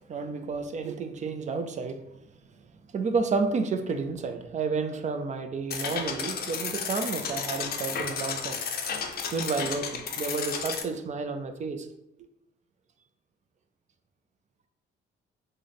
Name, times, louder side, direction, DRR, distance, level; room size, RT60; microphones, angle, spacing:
voice 1, 0.1-2.2 2.9-8.6 9.3-11.9, right 4 dB, 35° right, 7 dB, 0.4 m, -31 dB
sound 1, 5.7-10.8, left 6 dB, 50° left, 0.5 m, -33 dB
3.3 x 2.1 x 3.8 m, 0.81 s
cardioid pair, 90°, 20 cm